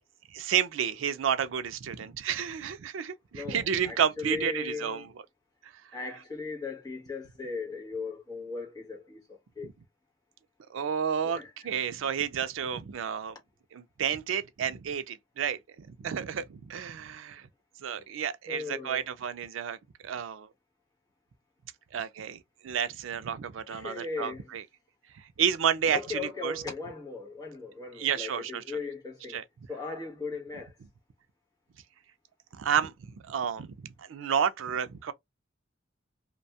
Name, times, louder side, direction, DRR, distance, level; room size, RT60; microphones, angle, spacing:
voice 1, 0.3-5.1 5.6-5.7 9.6-9.7 10.7-13.4 13.7-17.5 17.8-19.8 20.0-20.5 21.9-24.6 25.1-26.6 28.0-28.8 29.3-29.4 32.6-32.9 33.2-35.1, right 8 dB, 85° right, 0.4 m, -31 dB
voice 2, 3.3-5.1 5.9-9.2 9.6-9.7 11.2-11.5 18.5-19.1 23.7-24.5 25.9-29.4 29.7-30.7, left 4 dB, 20° left, 0.9 m, -38 dB
2.6 x 2.2 x 2.7 m
head